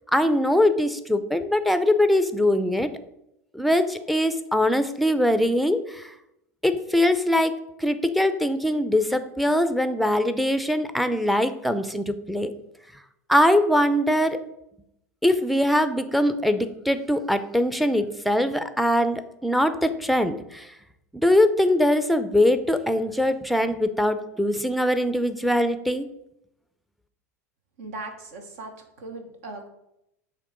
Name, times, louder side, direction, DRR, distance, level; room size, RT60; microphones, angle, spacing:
voice 1, 0.1-2.9 3.5-6.1 6.6-7.5 7.8-12.5 13.3-14.4 15.2-20.7 21.2-26.1, left 1 dB, ahead, 10 dB, 0.5 m, -22 dB
voice 2, 27.8-29.7, right 2 dB, 70° right, 5 dB, 1.2 m, -38 dB
6.5 x 3.1 x 5.2 m, 0.81 s
hypercardioid pair, 95°, 9 cm